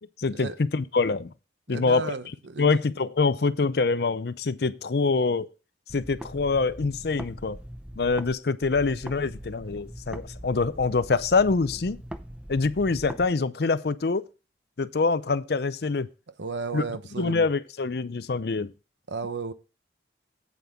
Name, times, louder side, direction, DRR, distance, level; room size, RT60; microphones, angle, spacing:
voice 1, 0.2-1.3 1.7-2.1 2.6-5.5 5.9-7.6 8.0-12.0 12.5-14.3 14.8-16.1 16.7-16.8 17.2-18.7, left 4 dB, 60° left, 0.5 m, -25 dB
voice 2, 1.7-2.8 16.4-17.5 19.1-19.5, right 4 dB, 80° right, 0.8 m, -34 dB
sound 1, 5.9-8.3 8.6-13.3, equal, 5° right, 0.5 m, -41 dB
9.3 x 8.6 x 3.6 m
head